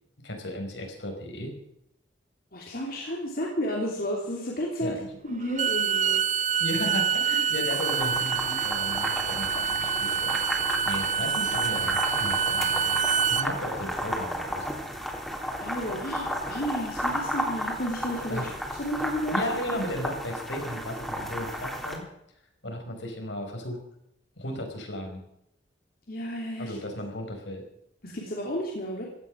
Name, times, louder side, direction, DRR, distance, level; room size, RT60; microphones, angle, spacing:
voice 1, 0.2-1.5 4.8-5.1 6.6-10.4 10.8-14.7 18.3-18.5 19.3-22.0 22.6-23.8 24.4-25.2 26.6-27.6, left 1 dB, 70° left, 3 dB, 5.1 m, -35 dB
voice 2, 2.5-4.9 5.2-6.2 6.5-6.6 15.6-18.5 18.8-19.4 26.1-26.7 28.0-29.0, equal, 50° left, -2 dB, 3.2 m, -32 dB
Bowed string instrument, 5.4-13.5, right 7 dB, 40° right, 0.6 m, -26 dB
sound 1, 7.7-22.0, equal, ahead, 3.3 m, -33 dB
16.5 x 13.0 x 6.4 m, 0.77 s
head